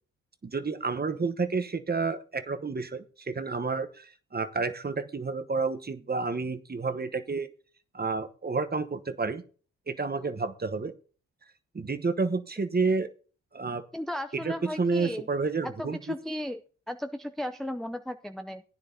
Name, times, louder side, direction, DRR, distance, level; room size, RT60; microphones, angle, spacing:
voice 1, 0.4-7.5 7.9-9.4 9.9-10.9 11.7-13.1 13.5-13.8 14.4-16.1, right 4 dB, 25° right, 10 dB, 1.1 m, -30 dB
voice 2, 13.9-15.3 15.6-16.6 16.9-18.6, left 1 dB, ahead, 8 dB, 0.5 m, -35 dB
16.0 x 9.7 x 2.8 m, 0.40 s
hypercardioid pair, 40°, 36 cm